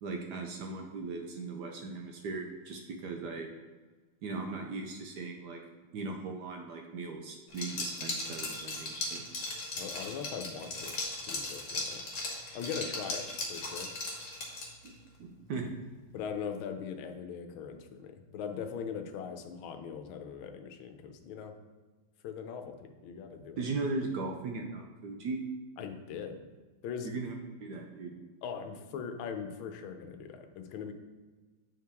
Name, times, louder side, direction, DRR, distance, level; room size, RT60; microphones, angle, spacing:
voice 1, 0.0-3.5 4.2-5.6 5.9-9.3 14.8-14.9 15.5-15.7 23.6-25.4 27.0-27.3 27.6-28.2, right 3 dB, 70° right, 2 dB, 1.1 m, -38 dB
Liquid, 7.5-14.9, left 2 dB, 50° left, 1.5 m, -37 dB
voice 2, 9.8-11.0 11.3-12.0 12.5-13.9 16.1-21.6 22.2-23.6 25.8-26.4 26.8-27.1 28.4-30.9, left 7 dB, 85° left, 7 dB, 1.5 m, -40 dB
8.0 x 4.7 x 3.5 m, 1.3 s
omnidirectional pair, 2.2 m